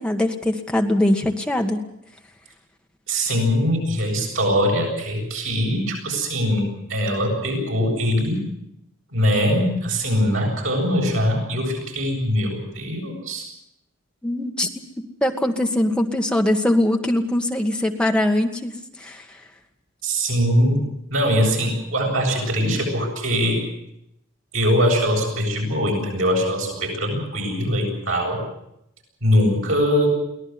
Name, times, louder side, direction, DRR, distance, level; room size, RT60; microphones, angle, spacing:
voice 1, 0.0-1.8 14.2-14.7 15.0-18.7 19.0-19.2, left 1 dB, 5° left, 2 dB, 1.7 m, -22 dB
voice 2, 3.1-8.4 9.1-13.4 20.0-20.8 21.1-23.6 24.5-28.4 29.2-30.1, equal, 80° right, 0 dB, 8.0 m, -22 dB
23.5 x 18.0 x 8.0 m, 0.78 s
head